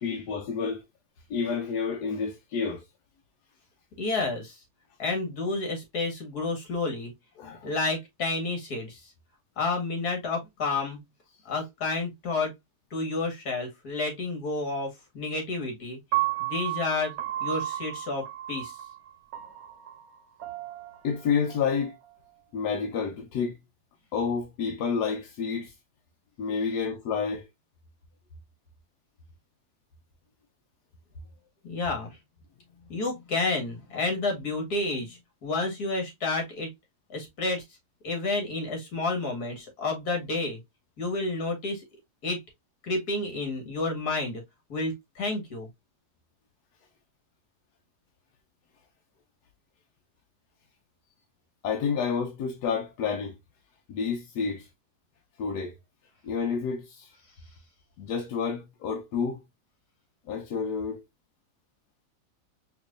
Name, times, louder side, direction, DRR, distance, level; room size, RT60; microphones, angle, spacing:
voice 1, 0.0-0.8 1.3-2.8 7.4-7.7 21.0-21.9 22.5-23.6 24.1-25.7 26.4-27.5 51.6-53.4 53.9-54.7 55.4-55.8 56.2-57.1 58.0-59.4 60.3-61.0, left 6 dB, 90° left, 1.2 m, -29 dB
voice 2, 4.0-4.6 5.0-7.1 7.6-9.0 9.6-11.0 11.5-12.5 12.9-16.0 16.4-17.2 17.4-18.7 31.6-32.2 32.9-36.7 37.1-37.6 38.0-40.6 41.0-41.8 42.2-42.4 42.8-44.4 44.7-45.7, left 3 dB, 70° left, 2.1 m, -30 dB
Piano, 16.1-22.3, right 15 dB, 70° right, 1.1 m, -34 dB
4.6 x 2.9 x 2.4 m
omnidirectional pair, 1.7 m